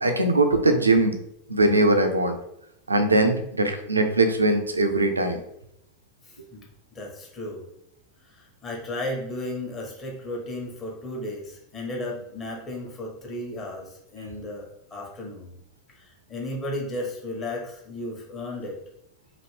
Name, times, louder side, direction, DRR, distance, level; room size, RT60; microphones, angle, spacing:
voice 1, 0.0-1.2 1.5-2.4 2.9-5.4, right 2 dB, 80° right, 6 dB, 0.4 m, -21 dB
voice 2, 6.2-6.7 6.9-7.6 8.3-15.5 16.0-18.8, left 1 dB, 25° left, -1 dB, 1.1 m, -34 dB
3.0 x 2.6 x 3.1 m, 0.78 s
figure-of-eight pair, 85°, 0 cm